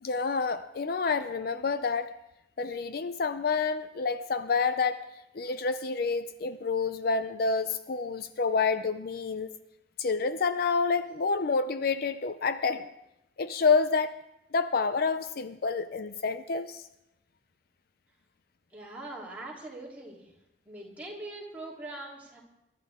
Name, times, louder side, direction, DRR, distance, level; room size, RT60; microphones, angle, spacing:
voice 1, 0.0-2.1 2.6-5.1 5.3-9.5 10.0-12.9 13.4-14.1 14.5-16.9, left 4 dB, 50° left, 11 dB, 0.5 m, -28 dB
voice 2, 18.7-20.3 20.6-22.4, right 2 dB, 10° right, -5 dB, 3.3 m, -42 dB
22.5 x 12.5 x 3.6 m, 0.90 s
head